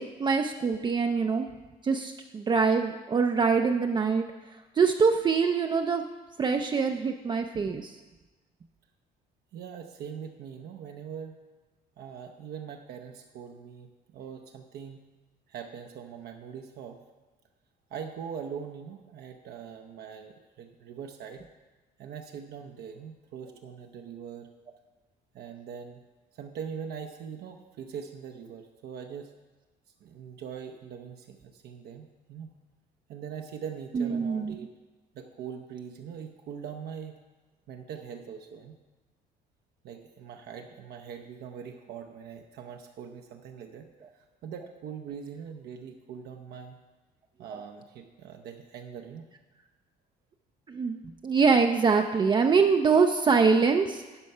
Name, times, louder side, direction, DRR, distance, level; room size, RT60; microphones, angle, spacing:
voice 1, 0.0-1.5 1.8-6.0 6.4-8.0 33.9-34.5 47.5-47.6 50.7-54.2, right 5 dB, 25° right, 5 dB, 0.4 m, -24 dB
voice 2, 9.5-11.4 12.0-15.0 15.5-17.0 17.9-21.4 22.0-24.5 25.3-26.0 26.3-29.3 30.0-32.5 33.1-34.8 35.1-37.2 37.7-38.8 39.8-43.9 44.1-46.8 47.4-49.3, right 7 dB, 70° right, 4 dB, 0.7 m, -42 dB
11.5 x 4.5 x 5.4 m, 1.2 s
cardioid pair, 110°, 17 cm